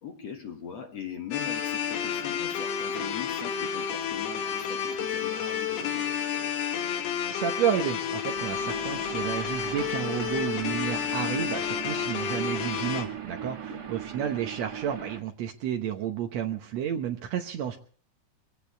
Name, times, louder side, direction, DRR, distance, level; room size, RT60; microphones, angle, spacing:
voice 1, 0.0-6.1 13.4-13.8, left 7 dB, 55° left, 4 dB, 2.2 m, -41 dB
sound 1, 1.3-13.1, left 8 dB, 90° left, 3.8 m, -31 dB
voice 2, 7.3-17.8, right 9 dB, 75° right, 3 dB, 1.6 m, -31 dB
sound 2, 8.3-15.2, right 8 dB, 30° right, 2.1 m, -40 dB
23.0 x 17.0 x 3.4 m, 0.42 s
omnidirectional pair, 4.5 m